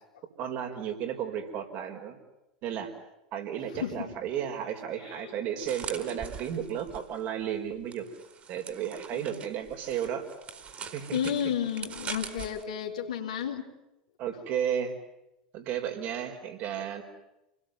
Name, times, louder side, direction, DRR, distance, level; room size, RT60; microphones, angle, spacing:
voice 1, 0.4-2.2 2.6-2.9 3.3-8.1 8.5-10.3 10.9-11.2 14.2-14.9 15.5-17.0, right 9 dB, 50° right, 4 dB, 5.0 m, -33 dB
voice 2, 3.7-4.1 5.0-5.4 9.1-9.4 11.1-13.7, left 8 dB, 75° left, 2 dB, 3.6 m, -32 dB
sound 1, 5.6-7.2 7.9-12.6, right 6 dB, 35° right, 4.4 m, -42 dB
28.5 x 21.0 x 9.4 m, 0.92 s
figure-of-eight pair, 80°, 4 cm